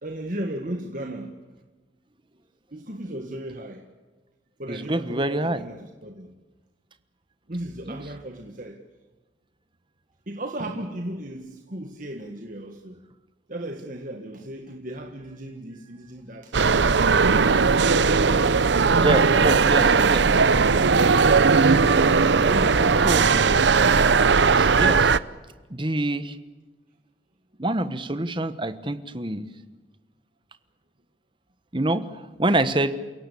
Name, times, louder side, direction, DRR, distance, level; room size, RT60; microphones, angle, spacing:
voice 1, 0.0-1.4 2.7-3.9 4.6-6.3 7.5-8.8 10.3-13.0 13.5-17.7 19.0-20.1 22.4-23.7, right 1 dB, 45° right, 4 dB, 1.7 m, -35 dB
voice 2, 4.7-5.6 7.9-8.0 19.0-20.2 23.0-23.3 24.5-25.1 25.7-26.4 27.6-29.5 31.7-32.1 32.4-32.9, right 1 dB, 25° right, 12 dB, 1.3 m, -26 dB
sound 1, 16.5-25.2, right 5 dB, 75° right, 0.7 m, -18 dB
sound 2, 16.8-22.9, left 1 dB, 30° left, 4.4 m, -42 dB
29.0 x 17.5 x 8.5 m, 1.2 s
head